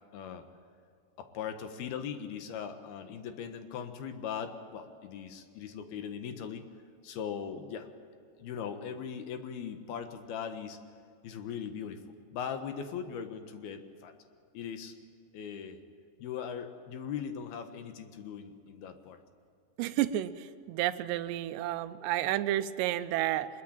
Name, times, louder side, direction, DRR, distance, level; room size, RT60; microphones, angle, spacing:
voice 1, 0.1-0.4 1.2-6.7 7.0-7.9 8.4-10.8 11.2-12.0 12.3-14.1 14.5-14.9 15.3-15.8 16.2-19.2, left 7 dB, 70° left, 7 dB, 3.1 m, -39 dB
voice 2, 19.8-23.5, right 13 dB, 80° right, 10 dB, 3.0 m, -31 dB
24.0 x 21.5 x 8.9 m, 2.3 s
omnidirectional pair, 4.9 m